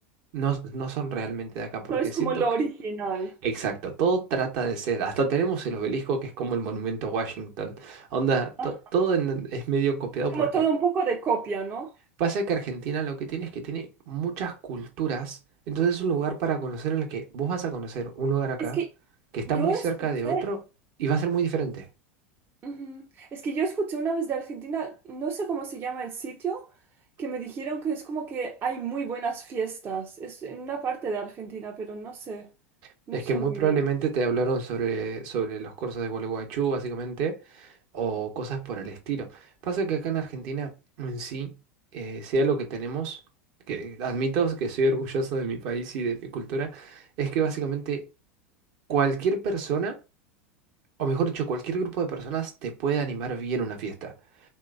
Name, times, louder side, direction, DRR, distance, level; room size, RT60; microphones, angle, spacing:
voice 1, 0.3-2.4 3.4-10.4 12.2-15.4 15.7-18.8 19.3-20.6 21.0-21.9 33.1-40.7 41.0-41.5 41.9-43.2 43.7-48.0 48.9-50.0 51.0-54.1, right 5 dB, 55° right, 1.0 m, -28 dB
voice 2, 1.9-3.4 8.6-8.7 10.3-11.9 18.6-18.9 19.5-20.5 22.6-26.7 27.2-32.5 33.1-33.7, right 5 dB, 30° right, 0.6 m, -30 dB
3.2 x 2.7 x 2.4 m
hypercardioid pair, 85°, 7 cm